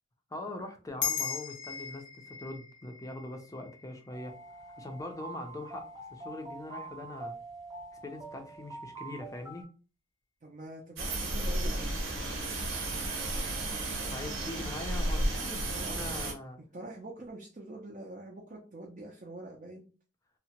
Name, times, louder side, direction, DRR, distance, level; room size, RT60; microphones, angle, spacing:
voice 1, 0.3-4.4 4.8-7.3 8.0-9.7 13.7-16.6, left 2 dB, 15° left, 4 dB, 0.5 m, -42 dB
sound 1, 1.0-5.7, left 7 dB, 70° left, 0.6 m, -39 dB
sound 2, 4.1-9.6, right 3 dB, 20° right, 0.9 m, -45 dB
voice 2, 10.4-12.2 15.7-16.3 16.7-19.9, right 2 dB, 40° right, -1 dB, 0.5 m, -45 dB
sound 3, 11.0-16.3, right 1 dB, 90° right, 0.8 m, -33 dB
2.8 x 2.1 x 2.8 m, 0.36 s
head